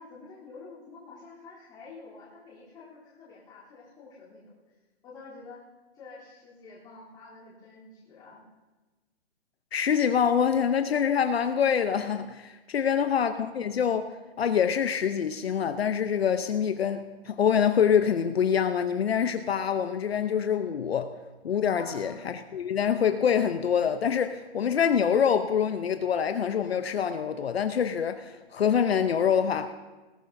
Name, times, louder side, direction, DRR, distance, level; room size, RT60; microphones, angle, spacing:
voice 1, 0.0-4.8 5.0-5.6 5.9-8.5 12.8-13.1 21.7-22.2, left 4 dB, 10° left, 3.3 m, -48 dB
voice 2, 9.7-21.1 21.4-29.7, left 7 dB, 65° left, 0.8 m, -25 dB
19.5 x 15.5 x 2.7 m
hypercardioid pair, 170°, 34 cm